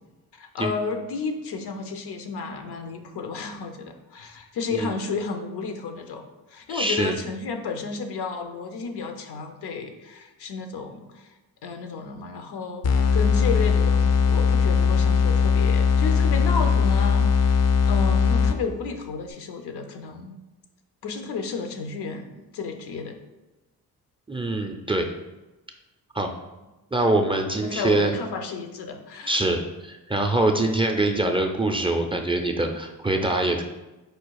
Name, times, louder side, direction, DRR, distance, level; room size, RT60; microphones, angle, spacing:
voice 1, 0.3-6.2 6.5-11.3 11.6-20.4 21.0-23.2 27.6-29.5, left 4 dB, 75° left, 6 dB, 0.7 m, -32 dB
voice 2, 6.7-7.2 24.3-25.0 26.1-26.3 26.9-28.1 29.3-33.6, right 2 dB, 15° right, 3 dB, 0.4 m, -24 dB
sound 1, 12.8-18.9, left 6 dB, 40° left, 0.5 m, -20 dB
4.8 x 2.4 x 4.6 m, 1.1 s
cardioid pair, 75°, 39 cm